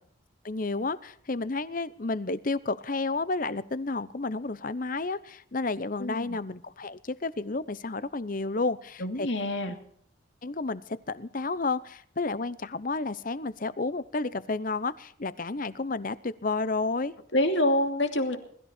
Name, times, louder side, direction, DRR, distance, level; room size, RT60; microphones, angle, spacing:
voice 1, 0.4-9.3 10.4-17.1, left 3 dB, 40° left, 16 dB, 0.8 m, -31 dB
voice 2, 6.0-6.4 9.0-9.8 17.3-18.4, left 1 dB, 65° left, 5 dB, 2.6 m, -26 dB
21.0 x 14.0 x 4.4 m, 0.63 s
head